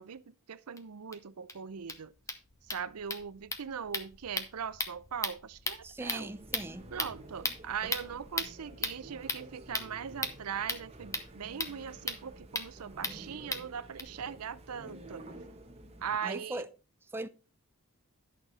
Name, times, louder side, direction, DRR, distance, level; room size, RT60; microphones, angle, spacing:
voice 1, 0.0-2.1 2.7-6.3 6.9-15.3 16.0-16.6, right 7 dB, 80° right, 0.6 m, -40 dB
sound 1, 0.8-0.9 1.1-1.2 1.5-1.6 1.8-14.0, left 2 dB, 15° left, 1.0 m, -38 dB
voice 2, 5.8-6.9 16.2-16.7 17.1-17.3, right 2 dB, 10° right, 0.4 m, -39 dB
sound 2, 6.2-16.2, right 1 dB, 30° right, 1.3 m, -51 dB
11.0 x 6.4 x 4.1 m
head